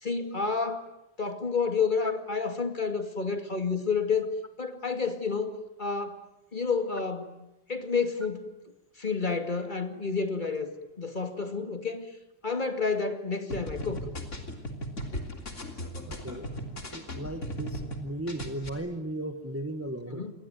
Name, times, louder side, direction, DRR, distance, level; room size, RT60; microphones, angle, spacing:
voice 1, 0.0-0.8 1.2-6.3 6.5-7.4 7.7-8.5 9.0-10.7 11.0-12.1 12.4-14.0 20.1-20.3, left 5 dB, 40° left, 7 dB, 2.4 m, -30 dB
sound 1, 13.5-18.0 18.3-18.7, equal, 75° left, 3.7 m, -36 dB
voice 2, 16.1-16.5 16.9-20.3, right 1 dB, 10° right, 9 dB, 1.6 m, -36 dB
28.5 x 22.0 x 9.2 m, 0.93 s
omnidirectional pair, 1.3 m